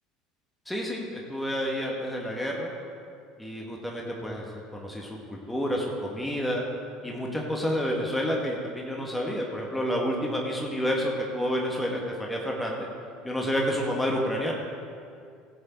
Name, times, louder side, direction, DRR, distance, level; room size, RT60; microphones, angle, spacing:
voice 1, 0.7-2.7 3.4-4.5 4.7-6.6 7.0-12.9 13.2-14.6, equal, 5° left, -2 dB, 1.8 m, -29 dB
17.0 x 7.6 x 4.5 m, 2.3 s
figure-of-eight pair, 65°, 0 cm